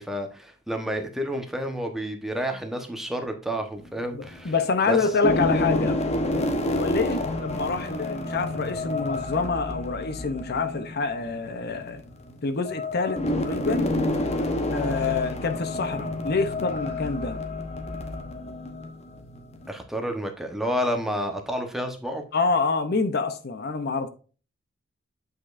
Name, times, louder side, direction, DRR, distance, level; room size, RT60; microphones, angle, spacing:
voice 1, 0.0-4.5 4.9-5.0 19.7-22.2, equal, ahead, 1.1 m, -30 dB
sound 1, 3.8-4.6 5.1-19.7, left 1 dB, 35° left, 1.0 m, -29 dB
voice 2, 4.1-6.0 6.6-12.0 12.4-14.0 14.7-17.4 22.3-24.1, left 4 dB, 50° left, 0.7 m, -27 dB
8.5 x 5.2 x 2.6 m
head